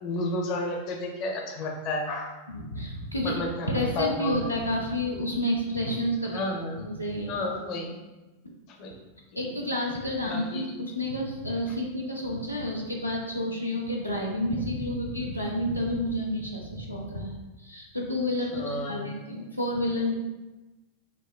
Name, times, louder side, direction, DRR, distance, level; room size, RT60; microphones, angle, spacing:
voice 1, 0.0-2.3 3.2-4.3 6.2-6.8 7.3-8.0 8.7-8.9 9.3-9.5 10.3-10.7 18.5-19.1, left 2 dB, 40° left, 2 dB, 0.5 m, -31 dB
voice 2, 2.5-3.4 3.7-6.4 6.8-7.4 9.3-20.1, left 1 dB, 90° left, -2 dB, 0.4 m, -30 dB
5.1 x 2.1 x 2.3 m, 1.1 s
figure-of-eight pair, 90°, 0 cm